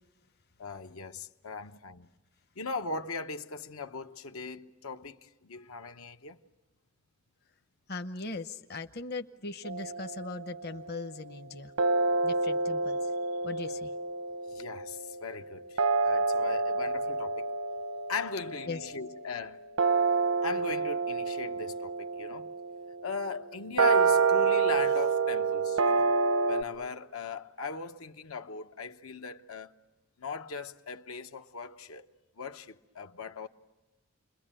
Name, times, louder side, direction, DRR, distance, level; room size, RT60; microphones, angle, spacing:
voice 1, 0.6-2.1 2.6-6.4 14.5-17.5 18.1-19.6 20.4-22.5 23.0-26.1 26.5-29.7 30.2-32.1 32.4-33.5, left 4 dB, 90° left, 1.0 m, -39 dB
voice 2, 7.9-11.7 12.2-13.0 13.4-13.9 18.7-18.8, left 3 dB, 50° left, 0.8 m, -39 dB
sound 1, 9.6-11.0 11.8-26.6, right 4 dB, 80° right, 1.1 m, -29 dB
29.5 x 22.0 x 9.0 m
head